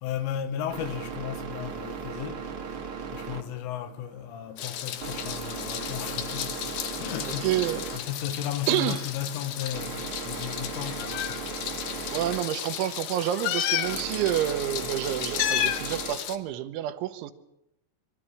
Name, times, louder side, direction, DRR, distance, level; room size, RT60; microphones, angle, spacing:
voice 1, 0.0-2.5 3.1-6.6 7.0-11.5 12.0-12.2, left 10 dB, 85° left, 4.0 m, -35 dB
sound 1, 0.7-16.1, right 6 dB, 60° right, 1.4 m, -38 dB
Meow, 4.6-16.4, left 11 dB, 70° left, 2.8 m, -33 dB
voice 2, 7.2-7.8 8.7-9.0 12.1-17.3, right 12 dB, 80° right, 3.3 m, -28 dB
25.0 x 13.0 x 10.0 m
omnidirectional pair, 5.5 m